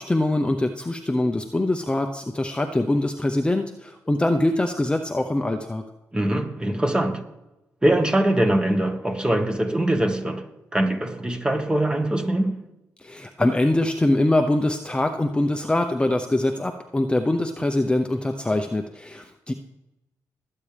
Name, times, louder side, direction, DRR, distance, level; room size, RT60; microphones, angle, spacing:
voice 1, 0.0-5.8 13.0-19.5, left 1 dB, 15° left, 0.8 m, -23 dB
voice 2, 6.1-7.3 7.8-12.6, right 1 dB, 15° right, 1.5 m, -23 dB
21.0 x 8.6 x 3.4 m
cardioid pair, 75°, 7 cm